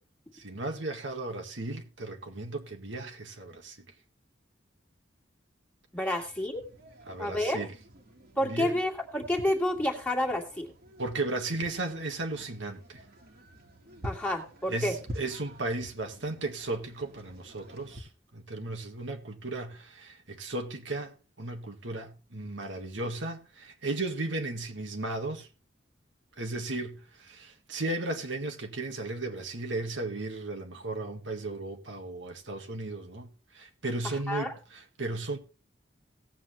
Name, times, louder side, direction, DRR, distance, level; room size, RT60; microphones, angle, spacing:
voice 1, 0.3-3.8 7.1-7.7 8.4-8.7 11.0-13.0 14.7-25.5 26.4-33.3 33.5-35.4, right 2 dB, 85° right, 1.7 m, -35 dB
voice 2, 5.9-6.6 7.2-7.7 8.4-10.7 14.0-14.9 34.3-34.5, left 1 dB, 10° left, 1.8 m, -29 dB
sound 1, 6.2-18.0, equal, 55° right, 2.0 m, -48 dB
17.5 x 7.6 x 3.2 m
head